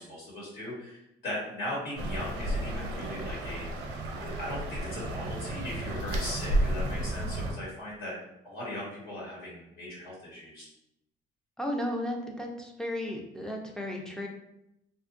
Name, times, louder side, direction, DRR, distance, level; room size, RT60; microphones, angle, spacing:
voice 1, 0.0-3.8 4.2-8.2 8.4-10.7, left 1 dB, 60° left, -6 dB, 1.2 m, -39 dB
sound 1, 2.0-7.5, right 1 dB, 80° right, 0.6 m, -32 dB
voice 2, 11.6-14.3, left 1 dB, 5° left, 0 dB, 0.4 m, -34 dB
2.7 x 2.3 x 2.5 m, 0.83 s
cardioid pair, 110°, 17 cm